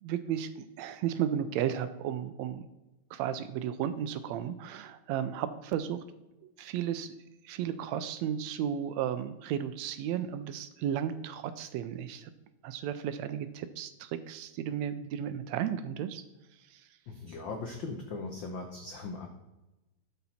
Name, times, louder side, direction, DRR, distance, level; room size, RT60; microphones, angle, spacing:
voice 1, 0.0-2.6 3.1-6.0 6.4-7.1 7.4-12.3 12.6-16.2 16.7-16.9, right 9 dB, 80° right, 12 dB, 1.7 m, -34 dB
voice 2, 17.1-19.3, left 3 dB, 80° left, 4 dB, 1.0 m, -39 dB
12.0 x 5.7 x 4.2 m, 1.0 s
omnidirectional pair, 3.3 m